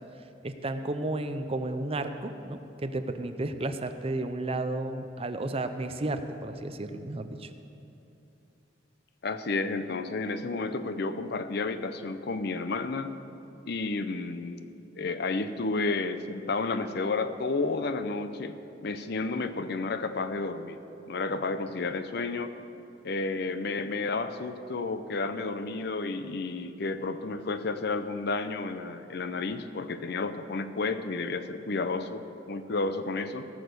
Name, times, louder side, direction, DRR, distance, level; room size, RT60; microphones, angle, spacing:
voice 1, 0.4-7.5, right 2 dB, 35° right, 9 dB, 0.6 m, -33 dB
voice 2, 9.2-13.1 13.7-14.7 15.0-18.5 18.8-20.8 21.1-22.6 23.0-33.5, left 3 dB, 60° left, 11 dB, 0.6 m, -31 dB
17.0 x 6.6 x 6.7 m, 2.8 s
head